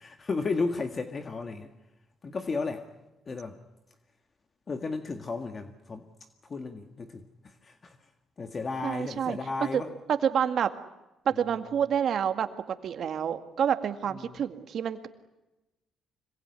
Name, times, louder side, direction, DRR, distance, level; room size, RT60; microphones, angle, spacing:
voice 1, 0.0-1.7 2.2-2.8 3.3-3.5 4.7-6.0 6.5-7.2 7.6-8.0 8.4-9.9 14.2-14.4, left 4 dB, 35° left, 7 dB, 1.8 m, -33 dB
voice 2, 8.8-9.4 9.7-9.8 10.1-10.7 11.3-12.5 12.8-15.1, right 8 dB, 65° right, 9 dB, 2.0 m, -28 dB
25.5 x 23.0 x 9.8 m, 1.0 s
cardioid pair, 90°, 0 cm